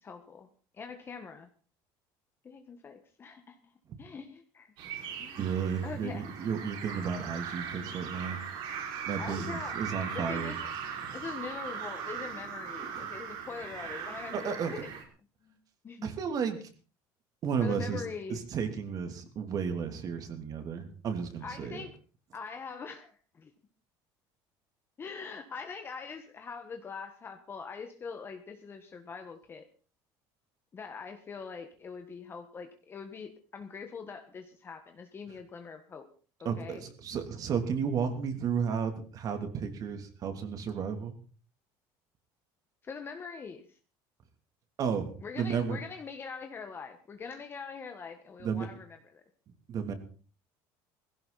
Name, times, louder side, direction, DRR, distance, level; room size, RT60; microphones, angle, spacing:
voice 1, 0.0-0.5 0.7-1.5 2.4-3.7 4.0-4.7 5.2-5.5 5.8-6.3 9.2-9.8 10.1-10.6 11.1-14.9 15.4-15.6 15.8-16.1 17.6-18.4 21.4-21.9 22.3-23.5 25.0-29.7 30.7-36.1 36.4-36.9 42.8-43.8 45.2-49.2, left 5 dB, 25° left, 6 dB, 1.5 m, -43 dB
sound 1, 4.8-15.0, right 7 dB, 65° right, 5.4 m, -39 dB
voice 2, 5.4-8.4 9.1-10.6 11.0-11.1 14.3-14.7 16.0-16.7 17.4-18.0 18.3-21.8 36.4-41.1 44.8-45.8 48.4-48.7 49.7-49.9, right 6 dB, 40° right, 7 dB, 3.0 m, -33 dB
18.5 x 16.5 x 4.2 m, 0.38 s
cardioid pair, 150°, 9 cm